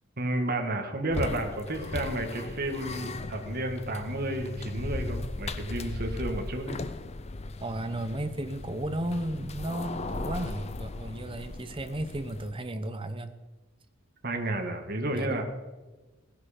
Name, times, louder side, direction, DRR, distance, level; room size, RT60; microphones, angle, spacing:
voice 1, 0.2-6.8 14.2-15.4, right 1 dB, 45° right, 3 dB, 1.7 m, -31 dB
sound 1, 1.1-12.5, left 2 dB, 30° left, 0.5 m, -37 dB
voice 2, 7.6-13.3 15.1-15.4, right 1 dB, 25° right, 8 dB, 0.9 m, -34 dB
17.0 x 10.5 x 5.2 m, 1.2 s
head